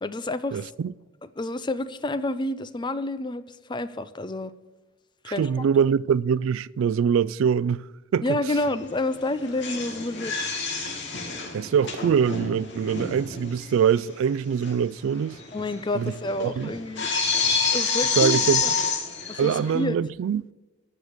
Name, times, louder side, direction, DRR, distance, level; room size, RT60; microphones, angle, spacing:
voice 1, 0.0-0.6 1.4-4.5 5.2-5.5 8.2-10.3 15.5-17.1 17.7-18.7 19.3-20.0, left 2 dB, 20° left, 0.5 m, -29 dB
voice 2, 0.5-0.9 5.4-8.4 11.5-15.4 15.9-16.1 16.4-16.7 18.2-18.6 19.4-20.4, right 7 dB, 70° right, 0.3 m, -23 dB
sound 1, 8.6-8.8 9.1-13.7 13.9-14.0 14.6-14.7 15.0-19.8, left 5 dB, 60° left, 2.0 m, -28 dB
14.5 x 5.0 x 8.8 m
head